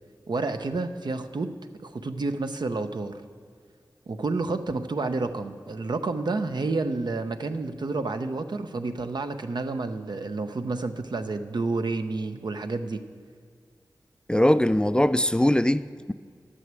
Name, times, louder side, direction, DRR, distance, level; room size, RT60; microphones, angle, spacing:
voice 1, 0.3-1.5 1.8-3.2 4.1-13.0, right 3 dB, 70° right, 0.6 m, -30 dB
voice 2, 14.3-16.1, left 1 dB, 10° left, 0.3 m, -21 dB
10.5 x 6.3 x 7.6 m
cardioid pair, 45°, 8 cm